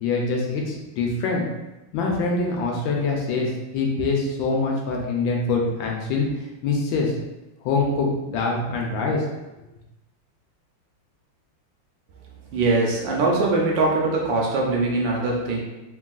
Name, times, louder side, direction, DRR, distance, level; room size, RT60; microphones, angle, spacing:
voice 1, 0.0-1.4 1.9-6.3 6.6-7.1 7.6-9.2, left 3 dB, 80° left, -1 dB, 1.3 m, -24 dB
voice 2, 12.5-15.6, right 3 dB, 75° right, -1 dB, 1.2 m, -22 dB
3.4 x 2.3 x 2.3 m, 1.0 s
omnidirectional pair, 2.2 m